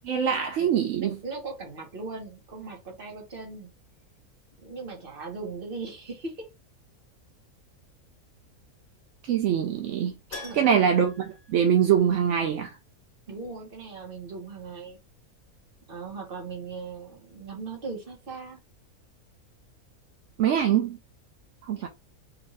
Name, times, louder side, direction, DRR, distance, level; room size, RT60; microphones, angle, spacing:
voice 1, 0.0-1.2 9.2-12.7 20.4-21.0 21.7-21.9, right 8 dB, 65° right, 0.8 m, -24 dB
voice 2, 1.0-3.7 4.6-6.5 10.4-10.9 13.3-15.0 15.9-18.6 21.8-21.9, right 4 dB, 40° right, 1.4 m, -38 dB
Keyboard (musical), 10.3-12.4 12.6-12.7 15.4-15.5 15.7-15.8, left 3 dB, 35° left, 1.5 m, -45 dB
3.9 x 2.6 x 3.2 m
omnidirectional pair, 1.6 m